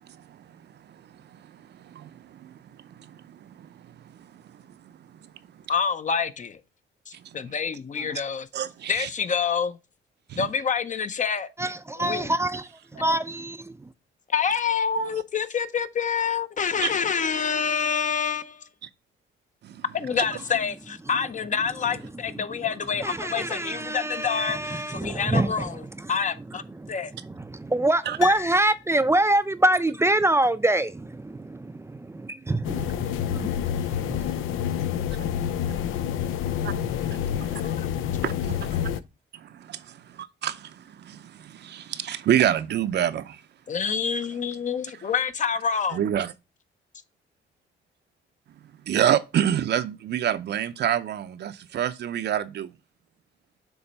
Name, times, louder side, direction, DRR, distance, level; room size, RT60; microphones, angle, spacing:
voice 1, 1.8-2.6 3.0-4.3 4.8-4.9 8.5-9.1 10.3-10.5 14.9-15.2 16.8-16.9 19.6-19.8 28.1-28.2 36.6-36.7 37.0-37.2 37.5-37.6 38.2-38.8 39.3-43.4 45.9-46.3 48.9-52.7, right 10 dB, 60° right, 0.6 m, -28 dB
voice 2, 5.7-6.6 7.1-8.5 8.9-9.8 10.3-11.5 12.0-12.3 14.3-18.7 19.9-25.8 26.1-26.6 26.9-27.1 37.6-37.9 43.7-46.0, left 6 dB, 40° left, 0.7 m, -27 dB
voice 3, 11.6-13.9 23.0-25.8 26.8-33.6 34.1-34.4, right 1 dB, 15° right, 0.4 m, -25 dB
Piano, 28.2-29.4 29.7-29.8, left 12 dB, 65° left, 1.1 m, -35 dB
sound 1, 32.6-39.0, left 9 dB, 85° left, 0.5 m, -28 dB
7.0 x 3.2 x 5.3 m
cardioid pair, 90°, 20 cm